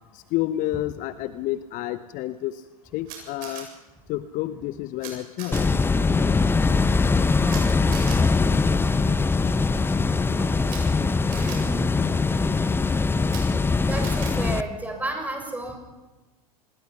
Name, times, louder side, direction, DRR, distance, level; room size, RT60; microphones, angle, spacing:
voice 1, 0.1-2.6 2.9-3.7 4.1-5.7, left 14 dB, 40° left, 14 dB, 0.8 m, -29 dB
Camera, 3.1-3.6 5.0-5.1 5.4-5.6 7.5-7.6 7.9-8.2 10.6-10.8 11.3-11.6 13.2-13.4 14.0-14.3, right 9 dB, 45° right, 7.8 m, -38 dB
sound 1, 5.5-14.6, left 4 dB, 10° left, 0.8 m, -22 dB
voice 2, 7.4-7.8 10.4-10.7 11.3-12.4 13.4-13.5 13.8-15.8, right 1 dB, 10° right, 3 dB, 6.7 m, -33 dB
26.5 x 21.5 x 5.8 m, 1.2 s
figure-of-eight pair, 85°, 20 cm